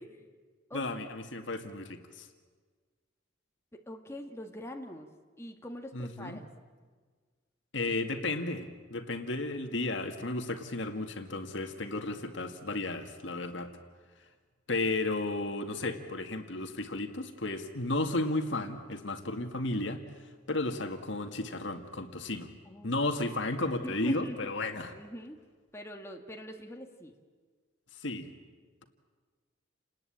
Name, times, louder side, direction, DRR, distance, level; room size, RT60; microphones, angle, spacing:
voice 1, 0.7-2.3 5.9-6.4 7.7-13.7 14.7-20.0 20.5-22.5 22.8-24.9 28.0-28.3, left 2 dB, 70° left, 6 dB, 2.1 m, -33 dB
voice 2, 3.7-5.1 5.4-6.5 22.7-22.9 23.8-24.4 24.9-25.4 25.7-27.1, equal, 15° left, 3 dB, 1.8 m, -43 dB
29.5 x 19.5 x 8.8 m, 1.5 s
head